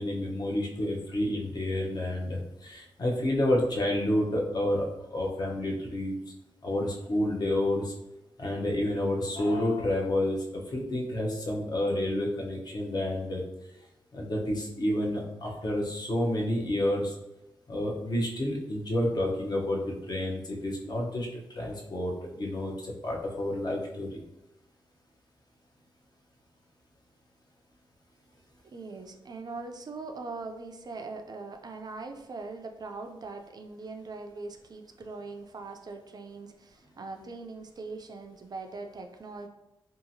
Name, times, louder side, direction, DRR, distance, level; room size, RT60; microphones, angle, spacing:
voice 1, 0.0-6.1 6.6-7.9 8.4-13.4 14.1-17.1 17.7-24.2, left 1 dB, 45° left, -1 dB, 0.7 m, -29 dB
voice 2, 28.6-39.5, right 3 dB, 45° right, 4 dB, 0.4 m, -41 dB
2.8 x 2.4 x 2.6 m, 0.92 s
cardioid pair, 70°, 9 cm